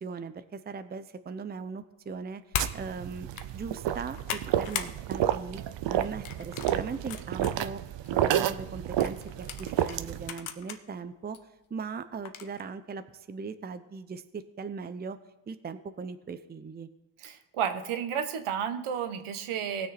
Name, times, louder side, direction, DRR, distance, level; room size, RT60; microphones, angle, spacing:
voice 1, 0.0-5.6 5.9-7.8 8.1-11.4 11.7-15.2 15.5-16.9, right 5 dB, 20° right, 11 dB, 0.6 m, -39 dB
sound 1, 2.5-2.8 3.2-3.5 3.9-4.9 5.3-5.6 6.2-7.5 8.0-8.1 9.0-10.8 11.3-11.4 12.2-12.6, left 9 dB, 70° left, 1.1 m, -37 dB
sound 2, 2.6-10.3, right 11 dB, 60° right, 0.7 m, -30 dB
voice 2, 17.2-19.9, right 8 dB, 75° right, 9 dB, 1.2 m, -32 dB
18.5 x 6.5 x 4.3 m, 1.0 s
cardioid pair, 90°, 50 cm